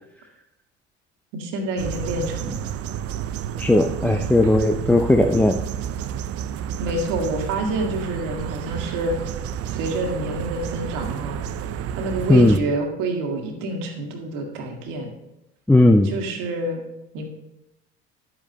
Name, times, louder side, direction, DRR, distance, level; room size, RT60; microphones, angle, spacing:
voice 1, 1.3-2.6 6.8-9.2 9.7-11.4 11.9-15.1 16.0-16.8 17.1-17.3, right 2 dB, 65° right, 2 dB, 1.9 m, -27 dB
Ambience by the River, 1.8-12.6, right 9 dB, 45° right, 0.6 m, -30 dB
voice 2, 3.6-5.6 12.3-12.6 15.7-16.1, left 1 dB, 5° left, 5 dB, 0.5 m, -16 dB
10.5 x 8.7 x 2.9 m, 0.90 s
hypercardioid pair, 65°, 34 cm